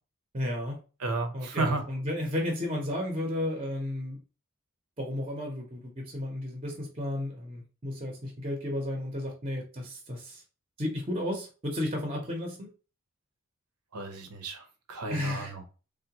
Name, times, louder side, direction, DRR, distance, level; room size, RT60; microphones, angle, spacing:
voice 1, 0.3-0.8 1.3-4.2 5.0-10.4 10.8-12.7 15.1-15.6, left 1 dB, 25° right, 0.6 m, -33 dB
voice 2, 1.0-1.8 13.9-14.6 14.9-15.6, right 3 dB, 90° right, 0.8 m, -32 dB
3.6 x 2.1 x 2.8 m
head